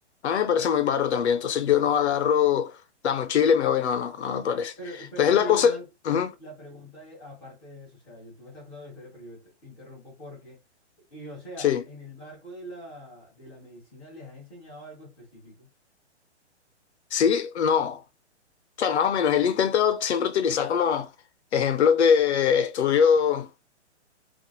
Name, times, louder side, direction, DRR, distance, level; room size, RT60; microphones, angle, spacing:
voice 1, 0.2-2.7 3.0-4.7 5.2-5.8 6.1-6.3 11.6-11.8 17.1-18.0 18.8-21.1 21.5-23.5, left 8 dB, 70° left, 0.6 m, -22 dB
voice 2, 4.8-5.8 6.4-10.6 11.1-15.7, equal, 5° left, 0.5 m, -43 dB
2.9 x 2.4 x 2.3 m
hypercardioid pair, 170°, 35 cm